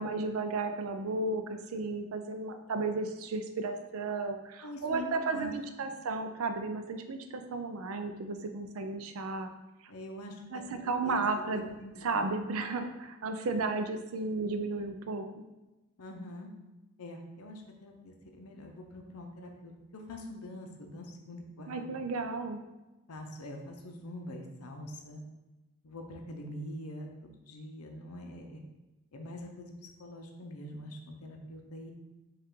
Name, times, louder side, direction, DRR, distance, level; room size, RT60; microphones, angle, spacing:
voice 1, 0.0-9.5 10.5-11.7 12.0-15.4 21.7-22.6, right 3 dB, 70° right, 7 dB, 0.4 m, -34 dB
voice 2, 4.6-5.5 9.9-10.4 11.0-12.3 16.0-16.5 17.0-21.9 23.1-25.2 25.8-28.6 29.1-29.7 30.0-31.9, left 1 dB, 85° left, 3 dB, 0.7 m, -44 dB
5.4 x 2.4 x 3.7 m, 1.1 s
head